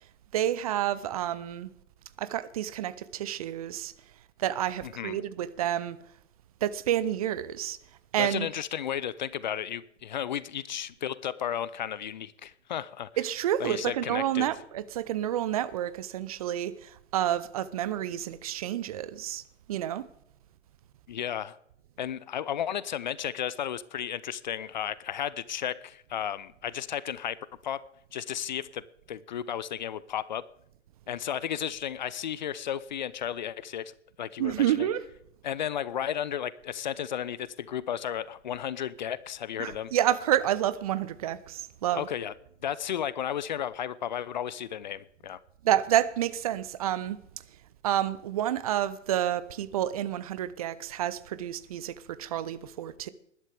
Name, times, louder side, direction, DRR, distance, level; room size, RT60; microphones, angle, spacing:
voice 1, 0.3-1.7 2.2-3.9 4.4-6.0 6.6-7.8 8.1-8.5 13.2-19.4 19.7-20.0 34.4-35.0 39.6-42.1 45.6-47.2 47.8-53.1, right 11 dB, 30° right, 0.6 m, -29 dB
voice 2, 4.8-5.2 8.2-13.1 13.6-14.5 21.1-21.6 22.0-27.8 28.1-30.5 31.1-33.9 34.2-34.9 35.4-39.9 41.9-42.3 42.6-45.4, left 9 dB, 40° left, 0.6 m, -33 dB
20.0 x 11.5 x 3.4 m
figure-of-eight pair, 120°, 36 cm